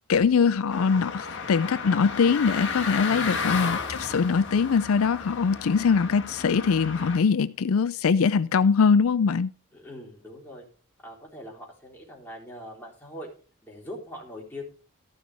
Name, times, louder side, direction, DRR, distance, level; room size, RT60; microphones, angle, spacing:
voice 1, 0.1-9.5, left 5 dB, 80° left, 0.4 m, -22 dB
sound 1, 0.7-7.2, left 5 dB, 55° left, 1.7 m, -33 dB
voice 2, 9.7-10.7 11.0-13.3 13.6-14.6, left 1 dB, 10° left, 3.8 m, -42 dB
14.0 x 6.1 x 4.7 m
head